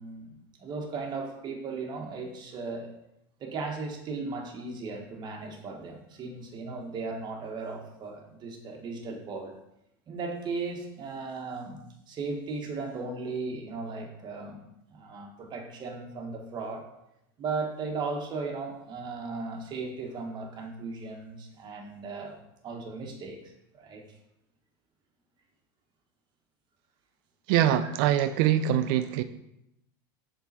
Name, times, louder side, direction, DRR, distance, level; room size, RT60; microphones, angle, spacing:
voice 1, 0.0-2.9 3.4-9.5 10.1-11.8 12.1-14.6 14.9-16.8 17.4-23.4 23.7-24.0 27.8-27.9, right 4 dB, 35° right, 2 dB, 1.4 m, -36 dB
voice 2, 27.5-29.2, right 11 dB, 60° right, 11 dB, 0.4 m, -23 dB
6.8 x 3.8 x 4.2 m, 0.82 s
supercardioid pair, 120°, 13 cm